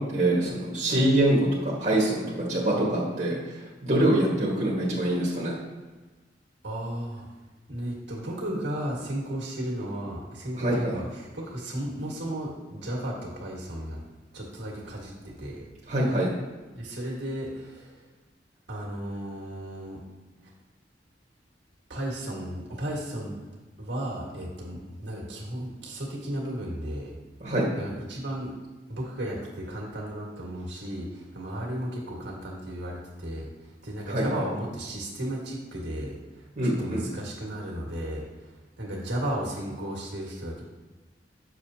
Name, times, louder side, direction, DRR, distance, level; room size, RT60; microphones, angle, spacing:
voice 1, 0.0-3.6 3.8-5.5 10.5-10.9 15.9-16.3 27.4-27.6 34.1-34.2 36.6-37.0, right 1 dB, 45° right, -6 dB, 1.5 m, -24 dB
voice 2, 6.6-7.3 7.7-14.0 14.3-15.7 16.7-18.0 18.7-20.0 21.9-23.4 23.8-27.1 27.8-28.5 28.9-40.6, right 1 dB, 80° right, -3 dB, 1.9 m, -34 dB
6.8 x 6.5 x 2.8 m, 1.3 s
head